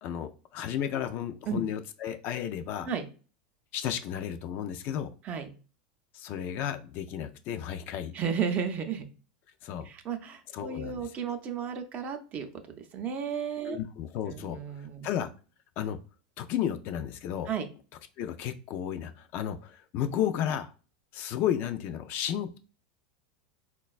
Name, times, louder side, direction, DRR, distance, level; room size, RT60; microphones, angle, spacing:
voice 1, 0.0-2.9 3.7-5.1 6.1-8.1 9.6-9.9 10.5-11.0 13.6-14.6 15.0-15.3 15.8-16.0 16.4-17.5 18.2-20.7 21.1-22.6, left 10 dB, 50° left, 8 dB, 0.3 m, -33 dB
voice 2, 8.1-9.1 9.8-12.5 12.8-13.8 14.3-15.1 17.5-17.7, right 7 dB, 35° right, 7 dB, 0.5 m, -33 dB
3.8 x 2.2 x 2.3 m, 0.36 s
supercardioid pair, 120°, 5 cm